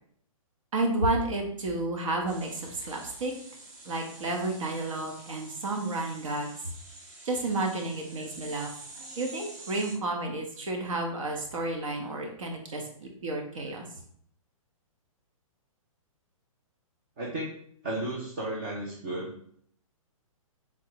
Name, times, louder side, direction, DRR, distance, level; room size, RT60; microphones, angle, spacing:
voice 1, 0.7-3.3 3.8-6.5 7.2-8.7 9.2-13.9, right 2 dB, 65° right, 1 dB, 1.0 m, -31 dB
sound 1, 2.3-10.0, right 2 dB, 30° right, 0.8 m, -48 dB
voice 2, 17.2-17.5 17.8-19.3, right 1 dB, 15° right, -4 dB, 0.3 m, -33 dB
3.7 x 3.1 x 2.9 m, 0.64 s
hypercardioid pair, 170°, 18 cm